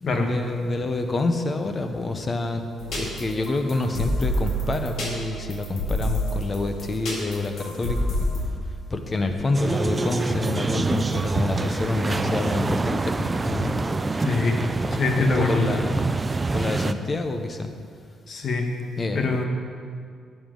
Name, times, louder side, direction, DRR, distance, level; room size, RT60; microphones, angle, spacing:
voice 1, 0.0-2.6 2.9-8.1 8.9-13.8 15.2-15.9 16.5-17.7 19.0-19.4, left 2 dB, 30° left, 6 dB, 0.9 m, -27 dB
sound 1, 2.8-8.4, equal, 75° left, 2.1 m, -28 dB
sound 2, 9.5-16.9, right 3 dB, 25° right, 0.4 m, -26 dB
voice 2, 14.2-14.6 14.9-15.7 18.3-18.7 19.1-19.4, left 3 dB, 55° left, 3 dB, 1.3 m, -23 dB
11.0 x 7.4 x 3.8 m, 2.2 s
cardioid pair, 90°, 0 cm